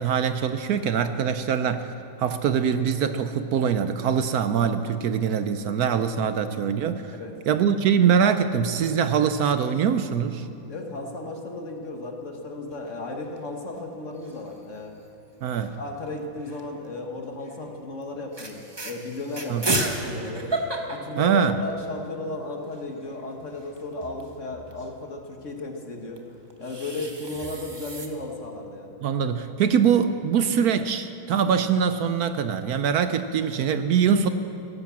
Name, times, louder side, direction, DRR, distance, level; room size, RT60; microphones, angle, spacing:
voice 1, 0.0-1.9 2.2-7.1 7.5-10.5 15.4-15.7 19.5-19.6 21.1-21.6 29.0-34.3, right 7 dB, 70° right, 10 dB, 0.9 m, -23 dB
voice 2, 10.7-14.9 15.7-20.6 20.9-26.2 26.6-28.9, left 2 dB, 45° left, 2 dB, 1.5 m, -35 dB
sound 1, 12.7-13.4 13.7-13.8 14.1-14.6 15.6-16.8 17.4-17.6 18.0-18.1 18.3-22.0 22.4-22.5 22.6-24.9 26.2-28.1, right 2 dB, 20° right, 0.8 m, -33 dB
16.5 x 11.5 x 7.3 m, 2.7 s
omnidirectional pair, 2.1 m